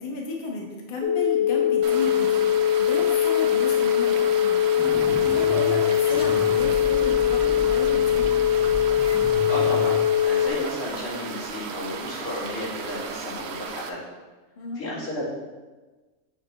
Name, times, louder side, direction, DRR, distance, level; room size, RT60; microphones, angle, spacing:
voice 1, 0.0-8.3 14.6-14.9, left 2 dB, 45° left, -1 dB, 1.0 m, -33 dB
sound 1, 1.0-10.5, left 10 dB, 65° left, 0.6 m, -21 dB
sound 2, 1.8-13.9, right 6 dB, 65° right, 0.7 m, -36 dB
sound 3, 4.8-10.0, right 2 dB, 20° right, 0.5 m, -34 dB
voice 2, 9.2-10.0 10.2-14.0 14.8-15.3, left 1 dB, 85° left, -7 dB, 2.4 m, -32 dB
7.9 x 3.3 x 4.2 m, 1.2 s
omnidirectional pair, 1.5 m